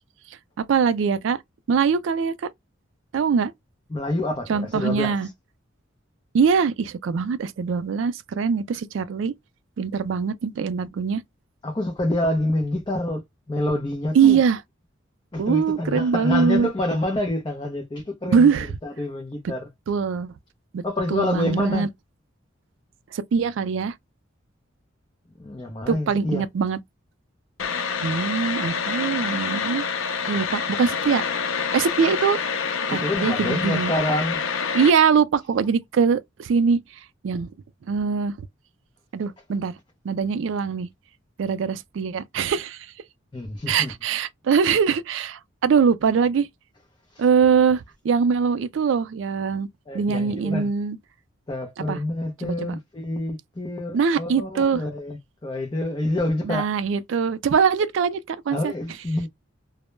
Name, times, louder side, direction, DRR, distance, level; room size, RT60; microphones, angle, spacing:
voice 1, 0.7-1.4 1.7-2.5 3.1-3.5 4.5-5.3 6.3-9.3 9.8-11.2 14.1-14.6 15.4-16.7 18.3-18.7 19.9-20.3 20.7-20.8 21.1-21.9 23.1-24.0 25.9-26.8 28.0-29.8 30.3-31.2 31.7-32.4 32.9-33.9 34.7-36.8 37.2-37.5 37.9-38.5 39.1-39.7 40.0-40.9 41.4-42.9 43.7-46.5 47.2-49.7 49.9-51.0 51.9-52.0 52.4-52.8 53.9-54.8 56.4-58.7, right 6 dB, 70° right, 0.3 m, -22 dB
voice 2, 3.9-5.2 11.6-13.2 13.5-14.4 15.3-18.5 18.8-19.7 20.8-21.9 25.4-26.4 32.9-34.4 43.3-43.9 47.1-47.2 49.9-50.7 51.5-56.7 58.5-59.3, left 1 dB, 25° left, 0.5 m, -27 dB
sound 1, 27.6-34.9, left 6 dB, 80° left, 0.5 m, -27 dB
2.1 x 2.0 x 3.0 m
head